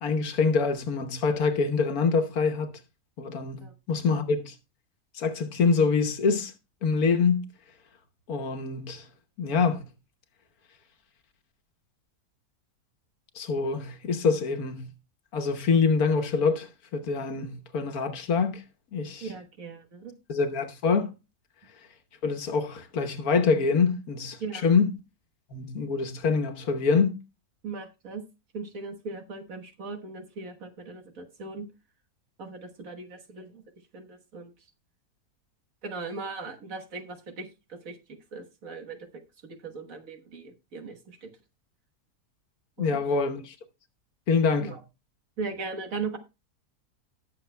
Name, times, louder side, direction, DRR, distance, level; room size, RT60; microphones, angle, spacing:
voice 1, 0.0-2.7 3.2-4.5 5.1-6.5 6.8-7.4 8.3-9.1 9.4-9.8 13.3-14.9 15.3-18.6 18.9-19.3 20.3-21.1 22.2-24.9 25.5-27.2 42.8-43.5 44.3-44.7, left 5 dB, 70° left, 1.5 m, -25 dB
voice 2, 19.2-20.2 24.4-24.7 27.6-28.2 28.5-31.7 32.4-33.6 33.9-34.5 35.8-39.0 39.4-41.3 42.8-43.0 44.6-44.8 45.4-46.2, right 4 dB, 60° right, 1.7 m, -38 dB
19.0 x 6.8 x 2.2 m
omnidirectional pair, 1.6 m